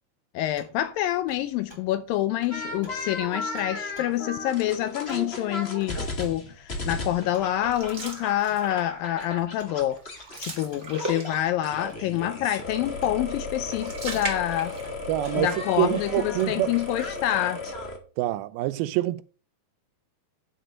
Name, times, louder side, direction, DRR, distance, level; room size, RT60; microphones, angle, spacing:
voice 1, 0.3-10.0 10.4-14.7 15.4-17.6, left 13 dB, 80° left, 2.1 m, -27 dB
sound 1, 0.6-17.0, left 1 dB, 5° left, 3.6 m, -53 dB
sound 2, 2.5-10.6 11.0-18.0, left 2 dB, 35° left, 1.0 m, -35 dB
sound 3, 7.6-9.0 9.4-9.6 9.9-11.6 13.4-15.2 15.5-15.6 16.5-17.3, right 2 dB, 30° right, 1.4 m, -38 dB
voice 2, 15.1-16.7 18.2-19.2, right 15 dB, 85° right, 2.4 m, -26 dB
9.3 x 6.1 x 6.3 m
omnidirectional pair, 4.4 m